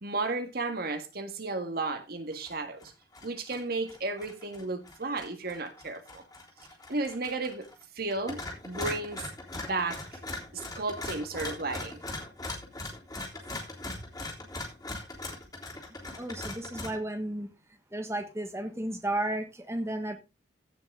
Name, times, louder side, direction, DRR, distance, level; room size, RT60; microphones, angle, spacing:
voice 1, 0.0-2.9 3.2-6.2 6.9-7.7 7.9-10.2 10.5-12.0, right 3 dB, 55° right, 1.7 m, -34 dB
sound 1, 2.3-2.5 2.8-3.6 3.9-7.8 8.1-17.0, left 2 dB, 20° left, 3.5 m, -40 dB
voice 2, 16.2-17.5 17.9-20.2, right 1 dB, 15° right, 1.4 m, -33 dB
16.0 x 6.1 x 3.7 m
head